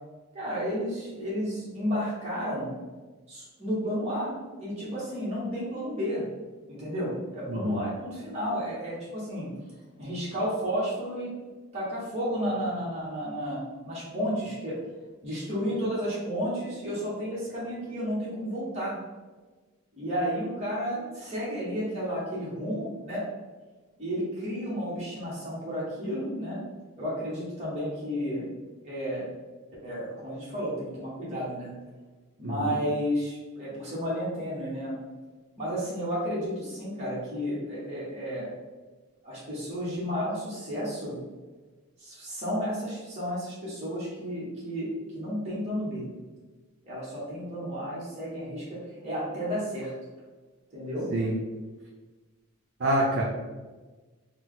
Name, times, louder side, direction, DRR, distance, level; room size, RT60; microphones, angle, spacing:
voice 1, 0.3-2.8 3.3-6.2 6.7-9.5 10.0-11.3 11.7-14.8 15.2-19.0 20.0-23.3 24.0-26.6 27.0-28.5 28.8-29.3 29.8-31.7 32.4-34.9 35.6-38.5 39.2-41.2 42.0-46.0 46.8-49.9 50.7-51.1, equal, 30° right, -9 dB, 1.3 m, -32 dB
voice 2, 7.5-7.9 32.4-32.7 51.1-51.3 52.8-53.2, right 1 dB, 50° right, -2 dB, 0.5 m, -27 dB
4.2 x 2.3 x 3.7 m, 1.3 s
head